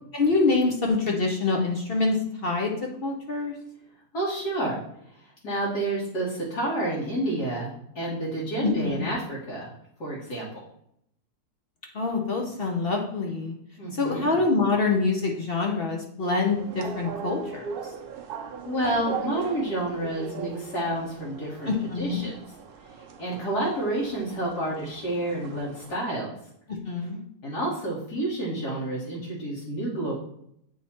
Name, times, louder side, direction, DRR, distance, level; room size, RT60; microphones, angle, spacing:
voice 1, 0.1-3.6 8.6-9.1 11.9-13.5 13.9-17.9 21.7-22.2 26.7-27.2, left 3 dB, 50° left, 1 dB, 0.7 m, -26 dB
voice 2, 4.1-4.8 5.4-9.7 10.0-10.6 13.8-14.3 18.7-21.7 22.0-22.3 23.2-26.3 27.4-30.1, right 1 dB, 75° left, -6 dB, 2.0 m, -29 dB
sound 1, 16.5-25.9, right 6 dB, 70° right, 0.5 m, -39 dB
8.3 x 2.9 x 4.3 m, 0.73 s
omnidirectional pair, 1.7 m